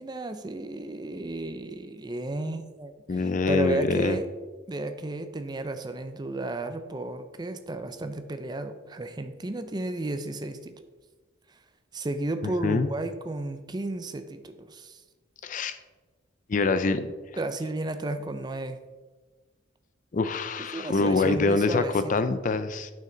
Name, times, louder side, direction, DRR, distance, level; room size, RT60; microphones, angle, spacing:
voice 1, 0.0-4.2 4.7-10.7 11.9-15.0 17.4-18.8 20.7-21.9, right 2 dB, 20° right, 9 dB, 0.5 m, -33 dB
voice 2, 3.1-4.2 12.4-12.9 15.4-15.8 16.5-17.1 20.1-22.9, left 3 dB, 40° left, 11 dB, 0.4 m, -25 dB
9.1 x 5.7 x 3.8 m, 1.3 s
head